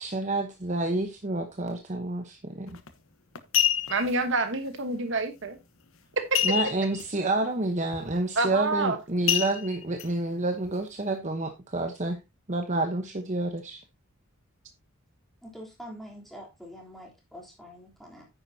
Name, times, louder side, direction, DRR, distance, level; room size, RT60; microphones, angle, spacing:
voice 1, 0.0-2.8 6.4-12.2 12.5-13.8, right 2 dB, 35° right, 5 dB, 1.0 m, -29 dB
sound 1, 2.7-2.9 3.4-4.1 6.3-7.0 7.4-7.5 7.9-8.2 9.3-10.1 10.6-10.7, left 10 dB, 70° left, 1.2 m, -26 dB
voice 2, 3.9-5.6 6.3-6.4 8.3-9.0, right 3 dB, 55° right, 8 dB, 1.2 m, -27 dB
voice 3, 15.4-18.3, equal, ahead, -2 dB, 3.4 m, -45 dB
9.7 x 9.7 x 2.8 m, 0.24 s
head